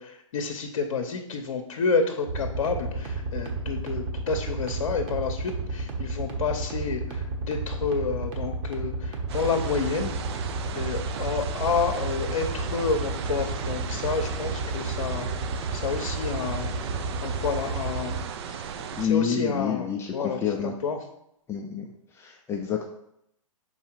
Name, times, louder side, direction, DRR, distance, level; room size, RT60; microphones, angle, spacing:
voice 1, 0.0-10.2 10.7-16.9 17.2-18.2 18.4-18.6 19.0-21.0, left 5 dB, 60° left, 4 dB, 0.8 m, -29 dB
sound 1, 2.3-18.2, right 3 dB, 30° right, 1.2 m, -31 dB
sound 2, 9.3-19.1, right 7 dB, 50° right, 0.6 m, -36 dB
voice 2, 19.0-20.7 21.5-21.9 22.2-22.9, left 8 dB, 15° left, 1 dB, 0.5 m, -28 dB
5.5 x 4.2 x 4.6 m, 0.78 s
hypercardioid pair, 120°, 17 cm